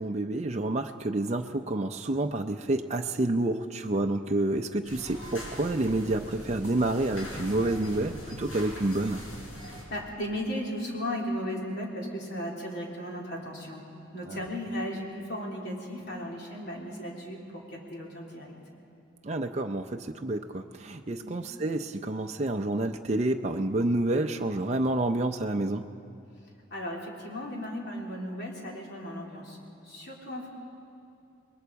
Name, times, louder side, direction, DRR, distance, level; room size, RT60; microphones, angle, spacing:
voice 1, 0.0-9.2 14.3-14.4 19.2-25.8, right 2 dB, 35° right, 4 dB, 0.5 m, -29 dB
sound 1, 4.8-9.8, equal, 80° left, 5.5 m, -42 dB
voice 2, 9.6-13.8 14.1-18.6 21.2-21.4 26.7-29.6 29.8-30.5, equal, 60° left, -2 dB, 3.5 m, -36 dB
28.0 x 21.5 x 4.7 m, 2.7 s
head